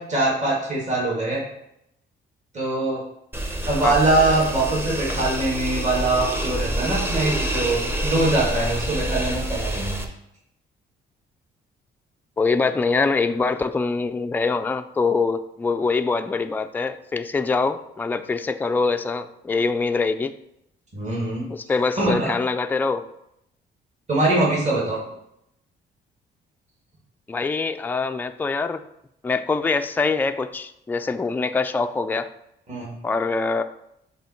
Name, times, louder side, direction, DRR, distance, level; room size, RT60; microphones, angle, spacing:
voice 1, 0.0-1.4 2.5-3.0 3.7-10.0 20.9-21.5 22.0-22.3 24.1-25.0 32.7-32.9, right 2 dB, 35° right, -5 dB, 2.1 m, -23 dB
sound 1, 3.3-10.0, right 1 dB, 10° right, 0.8 m, -27 dB
voice 2, 12.4-20.3 21.5-23.0 27.3-28.8 29.2-32.3 33.0-33.6, left 4 dB, 10° left, 8 dB, 0.3 m, -24 dB
7.6 x 2.8 x 4.4 m, 0.79 s
cardioid pair, 90°, 20 cm